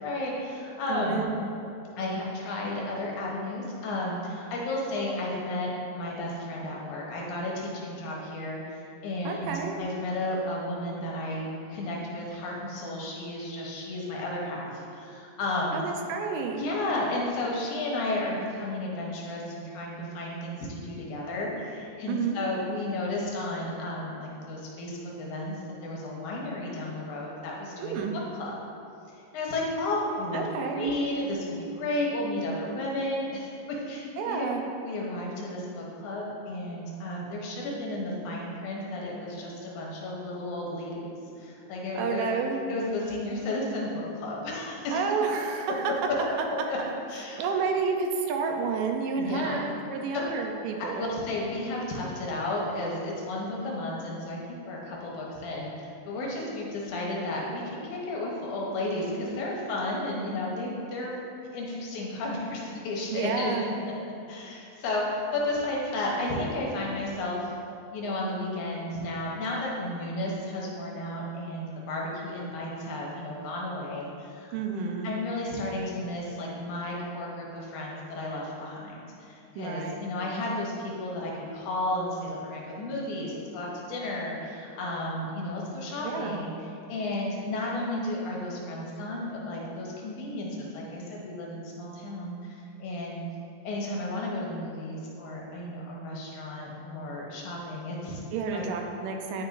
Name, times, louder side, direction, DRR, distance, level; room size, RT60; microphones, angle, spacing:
voice 1, 0.0-1.2 2.0-9.5 9.8-15.8 16.6-28.1 28.4-28.6 29.1-34.5 34.8-42.3 42.7-45.0 46.5-46.8 47.1-47.4 49.2-49.7 50.1-50.3 50.9-61.1 61.5-63.7 64.3-67.5 67.9-74.5 75.0-86.5 86.9-93.3 93.6-98.2 98.5-98.6, left 1 dB, 75° left, -3 dB, 2.3 m, -33 dB
voice 2, 0.9-1.3 9.2-9.8 15.7-16.6 22.1-22.5 27.8-28.1 30.3-30.9 34.2-34.6 42.0-42.6 44.9-45.8 47.4-51.1 63.1-63.7 74.5-75.1 79.6-80.0 86.0-86.4 98.3-99.4, right 5 dB, 85° right, 3 dB, 2.3 m, -30 dB
9.5 x 6.0 x 2.6 m, 2.7 s
omnidirectional pair, 3.8 m